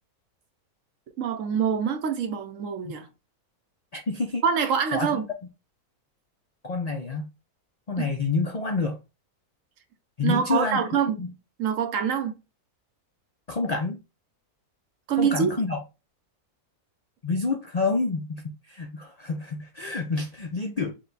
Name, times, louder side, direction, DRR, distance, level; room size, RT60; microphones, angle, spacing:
voice 1, 1.2-3.1 4.4-5.3 8.0-8.1 10.2-11.2 11.6-12.4 15.1-15.6, right 7 dB, 65° right, 1.0 m, -25 dB
voice 2, 3.9-4.4 4.9-5.2 6.6-7.3 7.9-9.0 10.2-10.8 11.2-11.3 13.5-14.0 15.2-15.8 17.2-20.9, left 3 dB, 70° left, 0.3 m, -28 dB
4.8 x 2.2 x 3.8 m
omnidirectional pair, 1.6 m